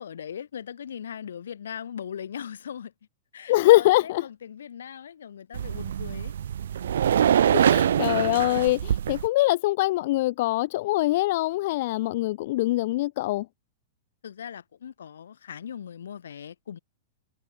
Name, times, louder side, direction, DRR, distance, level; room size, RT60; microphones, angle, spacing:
voice 1, 0.0-2.9 3.3-6.3 14.2-16.8, left 8 dB, 80° left, 4.7 m, -39 dB
voice 2, 3.5-4.3 7.5-13.5, left 18 dB, 55° left, 2.7 m, -23 dB
sound 1, 5.5-9.3, right 9 dB, 75° right, 1.5 m, -24 dB
hypercardioid pair, 125°, 0 cm